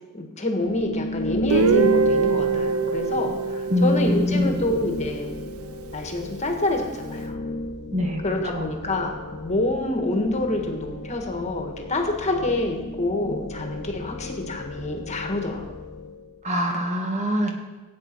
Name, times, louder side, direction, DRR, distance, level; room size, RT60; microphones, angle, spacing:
voice 1, 0.1-5.4 5.9-7.4 8.2-15.6, left 2 dB, 30° left, 3 dB, 1.6 m, -27 dB
sound 1, 0.6-16.4, left 1 dB, 55° left, 0.9 m, -34 dB
Guitar, 1.5-5.3, right 5 dB, 70° right, 0.5 m, -24 dB
voice 2, 3.7-4.6 7.9-8.7 16.4-17.5, left 1 dB, 35° right, 2 dB, 1.7 m, -24 dB
16.0 x 8.6 x 4.6 m, 1.2 s
head